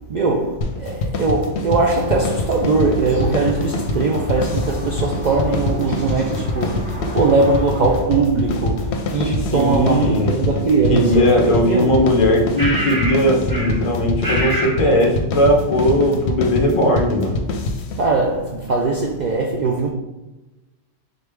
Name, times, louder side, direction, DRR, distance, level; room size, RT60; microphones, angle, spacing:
voice 1, 0.1-11.3 11.7-11.9 18.0-19.9, right 3 dB, 75° right, 0.4 m, -20 dB
sound 1, 0.6-18.1, left 2 dB, 65° left, 0.8 m, -25 dB
sound 2, 1.8-8.0, equal, 45° right, 1.4 m, -34 dB
voice 2, 9.4-10.4 10.9-17.4, equal, 50° left, 0.4 m, -18 dB
sound 3, 11.1-11.2 12.6-13.2 13.5-13.8 14.2-14.8, equal, 20° right, 0.9 m, -24 dB
3.9 x 3.3 x 3.3 m
omnidirectional pair, 1.3 m